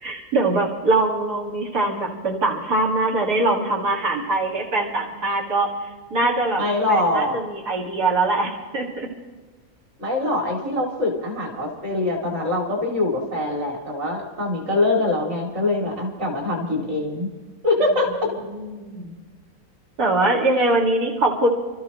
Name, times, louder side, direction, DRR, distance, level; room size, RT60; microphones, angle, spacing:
voice 1, 0.0-5.7 6.1-6.6 6.9-9.1 18.3-19.1 20.0-21.5, right 2 dB, 85° right, -3 dB, 2.6 m, -22 dB
voice 2, 6.6-7.4 10.0-17.3 17.6-18.3, left 2 dB, 45° right, 0 dB, 3.3 m, -23 dB
28.0 x 13.5 x 3.1 m, 1.4 s
omnidirectional pair, 1.6 m